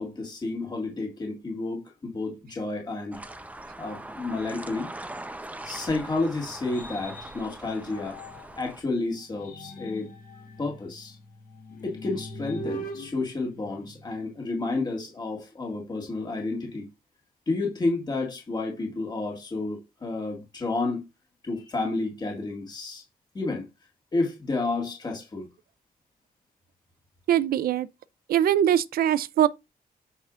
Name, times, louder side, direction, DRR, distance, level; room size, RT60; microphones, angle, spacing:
voice 1, 0.0-3.2 3.8-4.9 5.6-8.2 8.6-10.1 10.6-11.2 11.8-16.9 17.5-21.0 21.4-23.0 23.3-23.6 24.1-25.5, left 3 dB, 25° left, 1.9 m, -30 dB
sound 1, 3.1-8.8, right 1 dB, 10° right, 0.7 m, -41 dB
sound 2, 5.5-8.7 9.2-14.4, right 1 dB, 65° left, 2.0 m, -42 dB
voice 2, 27.3-27.9 28.3-29.5, right 10 dB, 70° right, 0.4 m, -22 dB
8.0 x 5.6 x 2.5 m
wide cardioid pair, 150°, 16 cm